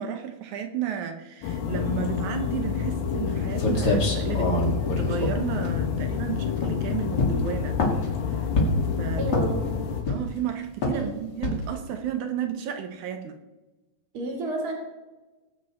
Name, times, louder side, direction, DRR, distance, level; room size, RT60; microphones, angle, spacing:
voice 1, 0.0-4.6 5.0-7.8 8.2-8.5 9.0-9.2 10.1-13.4, right 9 dB, 75° right, 1.8 m, -32 dB
sound 1, 1.4-10.0, left 8 dB, 75° left, 3.1 m, -28 dB
sound 2, 3.3-3.4 3.6-6.2 6.6-6.8 7.2-8.1 8.6-8.9 9.3-9.7 10.0-10.4 10.8-11.0 11.4-11.8, left 1 dB, 35° left, 1.8 m, -25 dB
voice 2, 9.2-9.6 10.9-11.1 14.1-14.7, right 2 dB, 40° right, 2.8 m, -30 dB
20.5 x 8.0 x 4.3 m
omnidirectional pair, 4.5 m